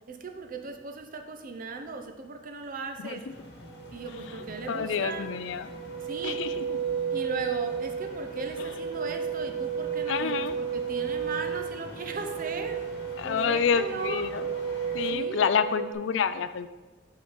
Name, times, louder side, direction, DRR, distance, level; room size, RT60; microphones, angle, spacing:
voice 1, 0.1-3.2 3.9-5.3 6.0-6.4 7.1-12.8 13.2-14.3 15.1-15.5, right 4 dB, 50° right, 6 dB, 0.6 m, -37 dB
sound 1, 3.3-15.1, left 1 dB, 60° left, 1.1 m, -47 dB
sound 2, 3.4-15.9, right 7 dB, 25° right, 1.5 m, -33 dB
voice 2, 4.7-5.7 6.2-6.8 8.6-8.8 10.1-10.5 13.2-14.5 14.9-16.7, left 7 dB, 80° left, 12 dB, 0.4 m, -28 dB
5.8 x 3.8 x 5.5 m, 1.2 s
head